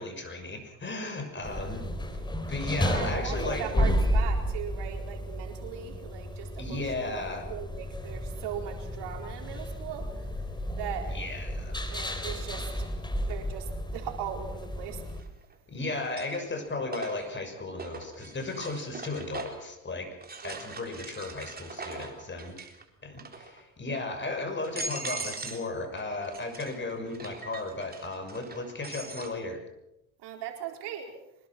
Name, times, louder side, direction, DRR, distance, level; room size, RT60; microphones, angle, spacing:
voice 1, 0.0-1.8 2.5-3.9 6.6-7.5 11.1-11.8 15.7-20.2 20.4-22.6 23.0-29.6, left 2 dB, 25° left, 6 dB, 6.3 m, -35 dB
sound 1, 1.4-15.2, equal, 10° left, 3.6 m, -32 dB
voice 2, 2.8-10.3 10.8-11.2 11.9-12.9 13.2-15.0 20.4-20.6 30.2-31.1, right 9 dB, 70° right, 3 dB, 4.4 m, -39 dB
sound 2, 13.3-13.4 15.1-15.5 15.9-19.7 20.2-22.8 23.1-23.6 24.2-24.3 24.6-25.7 26.0-29.3, right 3 dB, 20° right, 3.9 m, -41 dB
24.5 x 21.0 x 6.1 m, 0.87 s
supercardioid pair, 95°, 43 cm